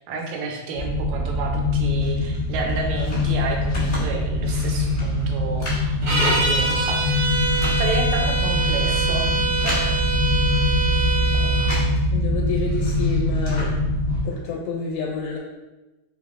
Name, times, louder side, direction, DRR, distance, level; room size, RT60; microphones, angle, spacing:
voice 1, 0.0-7.3 7.8-9.9 11.4-11.5, right 4 dB, 80° right, 1 dB, 2.0 m, -31 dB
sound 1, 0.8-14.2, left 1 dB, 60° left, 1.1 m, -23 dB
sound 2, 2.0-12.0 12.3-14.4, left 1 dB, 45° left, 0.6 m, -36 dB
sound 3, 6.0-11.8, right 2 dB, 60° right, 1.5 m, -24 dB
voice 2, 12.1-13.7 14.2-15.4, left 4 dB, 85° left, -2 dB, 1.9 m, -28 dB
4.5 x 3.4 x 2.4 m, 1.1 s
omnidirectional pair, 3.3 m